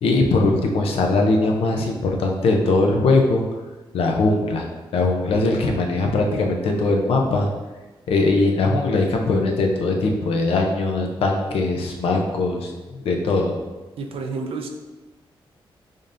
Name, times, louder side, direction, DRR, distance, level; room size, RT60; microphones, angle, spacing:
voice 1, 0.0-3.4 3.9-4.7 4.9-7.5 8.1-13.5, left 3 dB, 90° left, 2 dB, 0.5 m, -20 dB
voice 2, 14.0-14.7, right 4 dB, 80° right, 4 dB, 0.5 m, -29 dB
5.0 x 2.6 x 2.5 m, 1.2 s
cardioid pair, 90°, 10 cm